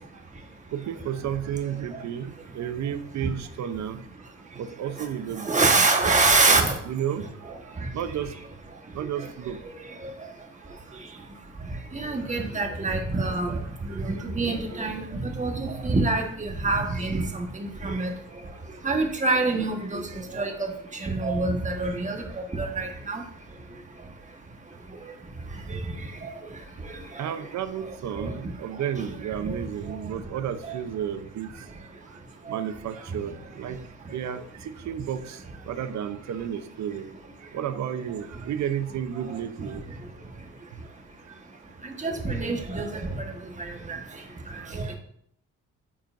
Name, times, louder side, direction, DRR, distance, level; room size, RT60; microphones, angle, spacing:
voice 1, 0.7-4.0 4.5-6.1 6.5-8.3 8.9-9.6 13.9-14.0 14.7-14.8 20.1-20.2 22.2-22.3 27.2-31.7 32.1-32.2 32.5-33.8 34.1-37.1 37.5-40.0 42.2-42.4, right 9 dB, 65° right, 11 dB, 0.7 m, -32 dB
voice 2, 5.4-6.8 7.8-7.9 9.2-9.3 9.8-10.1 11.9-18.1 18.8-23.2 25.7-26.3 26.8-27.3 28.2-28.5 29.0-29.1 29.4-29.9 30.6-30.7 32.5-32.6 41.8-43.3 43.6-44.0 44.5-45.0, right 3 dB, 25° right, 3 dB, 1.3 m, -26 dB
8.7 x 5.6 x 2.6 m, 0.67 s
cardioid pair, 90°, 30 cm